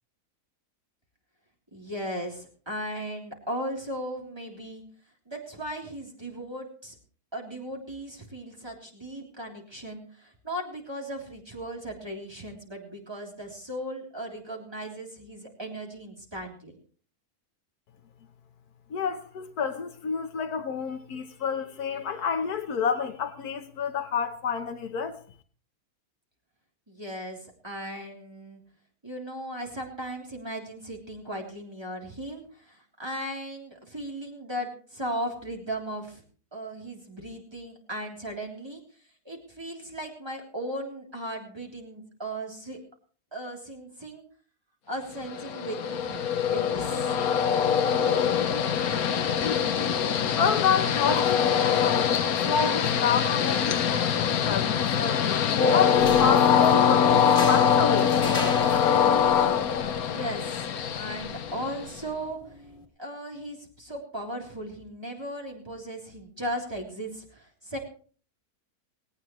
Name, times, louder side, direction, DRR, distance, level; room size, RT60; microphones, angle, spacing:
voice 1, 1.7-4.8 5.3-7.0 7.3-16.7 26.9-28.6 29.0-36.2 36.5-38.8 39.3-42.8 43.3-44.2 44.9-46.3 46.5-47.1 59.9-60.7 60.9-62.6 63.0-67.8, right 1 dB, 15° right, 3.5 m, -37 dB
voice 2, 18.9-25.2 50.3-55.2 55.7-58.1, left 6 dB, 90° left, 1.6 m, -29 dB
Train, 45.2-62.0, left 8 dB, 70° left, 1.4 m, -23 dB
sound 1, 55.9-62.9, left 3 dB, 35° left, 2.5 m, -39 dB
18.5 x 18.0 x 3.1 m
omnidirectional pair, 1.6 m